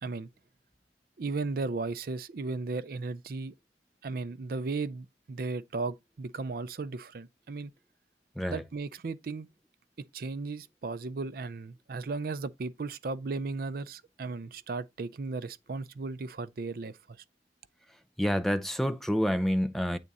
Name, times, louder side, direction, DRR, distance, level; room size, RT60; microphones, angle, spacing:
voice 1, 1.2-3.5 4.0-7.7 8.5-9.5 10.1-17.2, right 3 dB, 55° right, 0.4 m, -35 dB
voice 2, 18.2-20.0, equal, ahead, 0.5 m, -28 dB
8.3 x 3.7 x 4.1 m
head